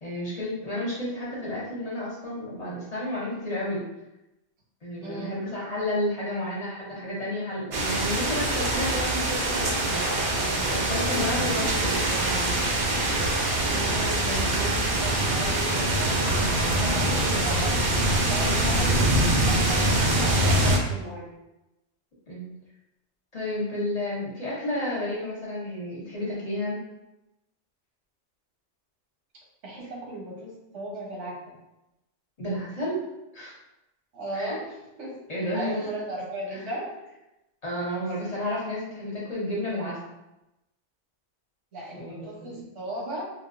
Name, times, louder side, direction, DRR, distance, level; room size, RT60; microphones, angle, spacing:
voice 1, 0.0-3.8 4.8-12.7 22.3-22.4 23.3-26.9 32.4-32.9 33.3-33.6 34.3-34.5 35.3-35.7 37.6-40.0 41.9-42.5, left 1 dB, 35° left, -6 dB, 0.8 m, -31 dB
voice 2, 5.0-5.5 13.6-21.3 29.6-31.4 34.1-35.2 35.5-36.9 41.7-43.2, right 1 dB, 85° right, -3 dB, 1.3 m, -36 dB
sound 1, 7.7-20.8, right 1 dB, 55° right, 0.7 m, -24 dB
4.0 x 2.2 x 2.5 m, 0.94 s
omnidirectional pair, 1.2 m